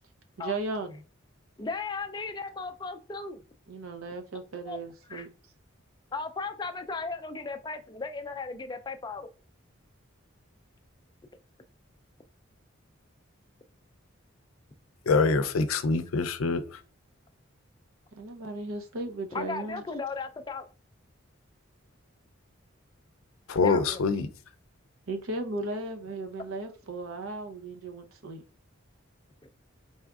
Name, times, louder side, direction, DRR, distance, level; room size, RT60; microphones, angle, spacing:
voice 1, 0.4-1.0 3.7-5.3 18.2-19.8 25.1-28.4, right 2 dB, 85° right, 0.7 m, -36 dB
voice 2, 1.6-3.4 4.7-4.8 5.1-5.3 6.1-9.3 19.3-20.7 23.6-24.0, left 4 dB, 20° left, 0.3 m, -36 dB
voice 3, 15.1-16.8 23.5-24.3, left 4 dB, 85° left, 0.5 m, -25 dB
4.1 x 3.6 x 2.3 m
head